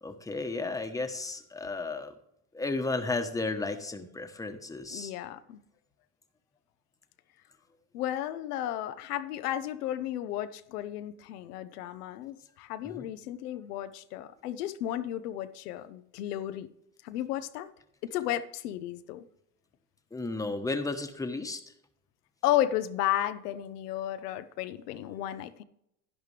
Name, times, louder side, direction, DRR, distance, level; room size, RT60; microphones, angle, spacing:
voice 1, 0.0-2.1 2.5-5.1 13.0-13.1 20.1-21.6, left 3 dB, 10° left, 1.1 m, -33 dB
voice 2, 4.9-5.6 7.9-16.7 17.0-17.7 18.0-19.3 22.4-25.6, left 12 dB, 90° left, 0.8 m, -33 dB
11.0 x 10.5 x 3.3 m
supercardioid pair, 105°, 45 cm